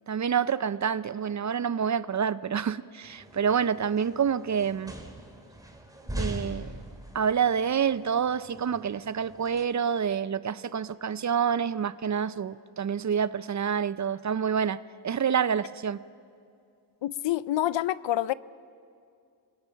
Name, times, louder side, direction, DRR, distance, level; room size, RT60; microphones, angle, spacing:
voice 1, 0.1-4.9 6.2-6.7 7.1-16.0, right 7 dB, 40° right, 17 dB, 0.5 m, -27 dB
sound 1, 3.0-9.6, right 1 dB, 10° right, 2.5 m, -41 dB
voice 2, 17.0-18.3, left 13 dB, 70° left, 19 dB, 0.6 m, -27 dB
27.0 x 21.0 x 5.8 m, 2.4 s
cardioid pair, 85°, 46 cm